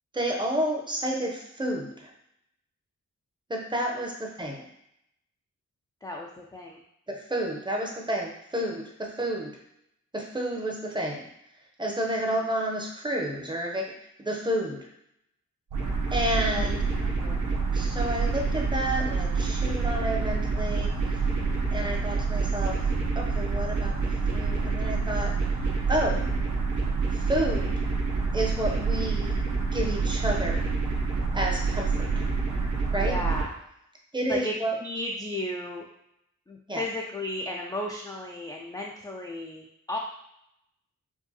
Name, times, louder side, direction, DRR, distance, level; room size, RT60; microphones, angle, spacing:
voice 1, 0.1-2.1 3.5-4.7 7.1-9.5 10.1-11.3 11.8-13.9 14.2-14.9 16.1-16.8 17.7-20.9 21.7-22.8 23.1-23.9 24.3-25.3 25.9-26.2 27.1-27.8 28.3-29.3 29.7-30.6 31.3-32.1 32.9-33.2 34.1-34.7 36.7-36.8, right 1 dB, 15° right, 0 dB, 0.6 m, -30 dB
voice 2, 6.0-6.8 12.2-12.3 16.5-16.7 17.0-17.8 21.3-21.7 33.0-33.5 34.3-35.9 36.5-40.0, left 1 dB, 15° left, -1 dB, 0.3 m, -35 dB
sound 1, 15.7-33.4, right 4 dB, 80° right, 0.9 m, -27 dB
4.6 x 2.5 x 2.8 m, 0.77 s
wide cardioid pair, 135°, 30 cm